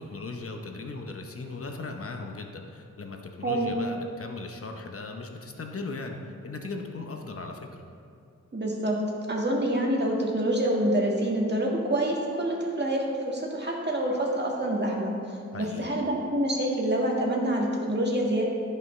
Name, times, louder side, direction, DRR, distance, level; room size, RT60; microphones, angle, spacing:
voice 1, 0.0-7.7 15.5-15.9, left 3 dB, 50° left, 3 dB, 0.8 m, -38 dB
voice 2, 3.4-3.7 8.5-9.0 9.3-15.2 15.6-18.4, right 1 dB, 35° right, -2 dB, 1.7 m, -26 dB
15.0 x 5.6 x 3.2 m, 2.4 s
wide cardioid pair, 70°, 29 cm